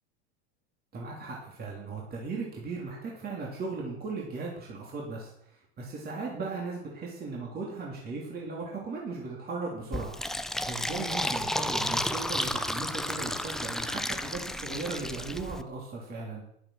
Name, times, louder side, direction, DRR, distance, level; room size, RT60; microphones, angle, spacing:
voice 1, 0.9-10.1 10.6-16.5, right 3 dB, 30° right, -3 dB, 3.3 m, -37 dB
Fill (with liquid), 9.9-15.6, left 1 dB, ahead, 0.4 m, -32 dB
11.0 x 8.5 x 5.8 m, 0.74 s
supercardioid pair, 115°, 32 cm